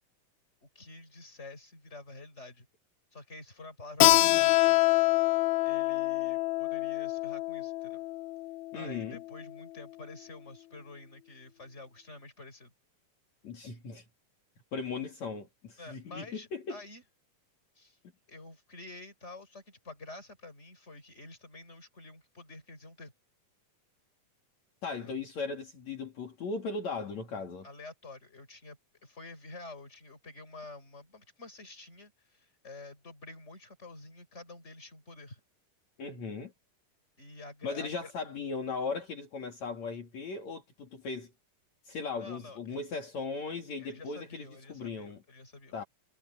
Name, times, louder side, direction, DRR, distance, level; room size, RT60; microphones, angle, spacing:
voice 1, 0.6-2.7 3.1-4.8 5.6-8.0 8.7-12.7 15.8-17.0 17.8-18.0 18.3-23.1 25.0-25.1 27.6-35.4 37.2-38.1 42.2-42.6 43.8-45.7, left 2 dB, 20° left, 5.9 m, -49 dB
Keyboard (musical), 4.0-9.3, left 19 dB, 75° left, 1.9 m, -26 dB
voice 2, 8.7-9.2 13.4-14.0 14.7-16.8 24.8-27.7 36.0-36.5 37.6-41.3 41.9-45.2 45.7-45.8, left 4 dB, 60° left, 3.9 m, -37 dB
omnidirectional pair, 3.7 m